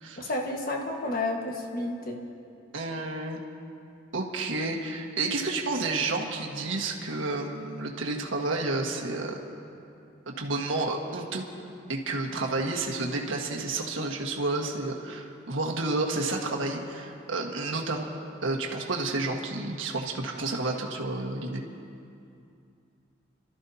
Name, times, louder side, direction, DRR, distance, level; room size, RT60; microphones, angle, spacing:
voice 1, 0.2-2.2, left 2 dB, 45° left, 1 dB, 1.5 m, -31 dB
voice 2, 2.7-3.4 4.1-9.4 10.3-11.4 11.9-18.1 18.4-21.6, right 2 dB, 85° right, 0 dB, 1.5 m, -30 dB
29.5 x 13.5 x 2.8 m, 2.5 s
head